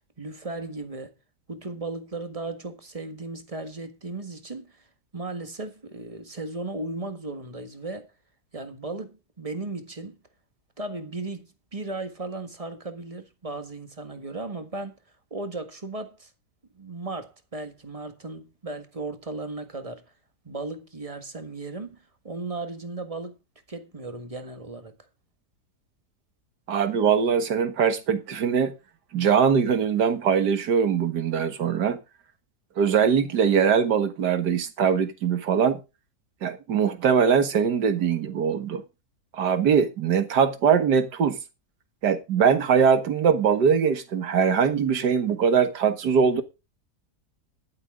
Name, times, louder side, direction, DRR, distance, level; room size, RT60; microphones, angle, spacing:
voice 1, 0.2-1.1 1.5-4.8 5.1-8.1 8.5-10.2 10.8-15.0 15.3-16.3 16.7-20.0 20.4-23.4 23.7-24.9, right 3 dB, 20° right, 1.6 m, -36 dB
voice 2, 26.7-28.7 29.1-32.0 32.8-35.8 36.4-38.8 39.3-41.4 42.0-46.4, right 7 dB, 80° right, 2.1 m, -22 dB
12.0 x 11.5 x 3.7 m
omnidirectional pair, 1.7 m